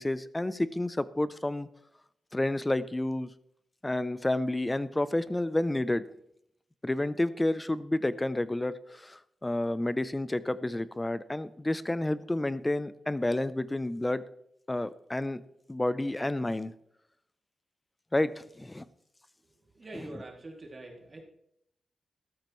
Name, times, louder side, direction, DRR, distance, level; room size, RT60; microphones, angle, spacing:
voice 1, 0.0-1.7 2.3-3.3 3.8-6.0 6.8-14.2 14.7-15.4 15.7-16.7 18.1-18.8 19.9-20.2, left 1 dB, 15° left, 15 dB, 0.6 m, -30 dB
voice 2, 19.7-21.2, right 2 dB, 35° right, 0 dB, 2.6 m, -44 dB
13.5 x 13.0 x 3.1 m, 0.73 s
wide cardioid pair, 110°, 0 cm